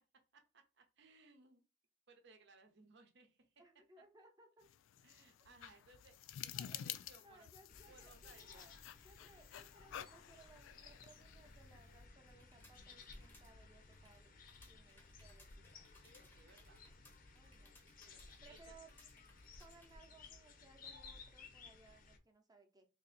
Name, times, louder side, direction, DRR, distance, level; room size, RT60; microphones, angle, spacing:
voice 1, 0.3-1.6 2.1-3.5 5.0-7.5 7.9-8.7 16.0-16.8 17.6-18.7, right 3 dB, 65° right, 6 dB, 0.7 m, -65 dB
voice 2, 3.6-4.7 6.5-6.8 7.2-8.8 9.0-14.4 14.7-15.9 17.3-17.8 18.4-18.9 19.6-22.9, right 3 dB, 20° right, 4 dB, 0.7 m, -64 dB
sound 1, 4.6-12.1, left 11 dB, 85° left, 0.3 m, -51 dB
sound 2, 7.7-22.2, left 3 dB, 50° left, 0.6 m, -59 dB
sound 3, 12.3-20.1, left 2 dB, 10° left, 0.7 m, -68 dB
2.8 x 2.6 x 4.1 m, 0.30 s
head